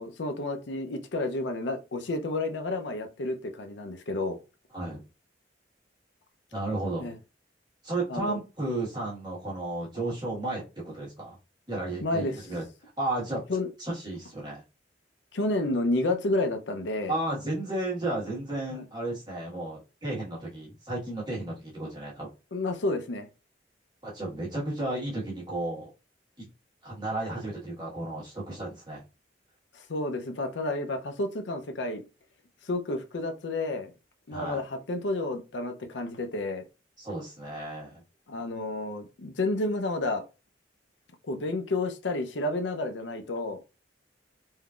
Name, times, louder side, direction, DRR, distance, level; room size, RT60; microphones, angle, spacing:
voice 1, 0.0-4.4 7.0-7.2 8.1-8.4 12.0-12.4 13.5-13.7 15.3-17.1 18.7-18.8 22.5-23.3 29.7-32.0 32.6-33.9 34.3-36.6 38.3-40.2 41.3-43.6, left 2 dB, 85° left, 0.6 m, -30 dB
voice 2, 6.5-7.1 7.8-11.4 11.7-12.6 13.0-13.4 13.8-14.6 17.1-22.3 24.0-25.9 26.4-26.5 26.8-29.0 34.3-34.6 37.0-38.0, right 2 dB, 25° right, 1.4 m, -33 dB
3.6 x 2.7 x 2.3 m
head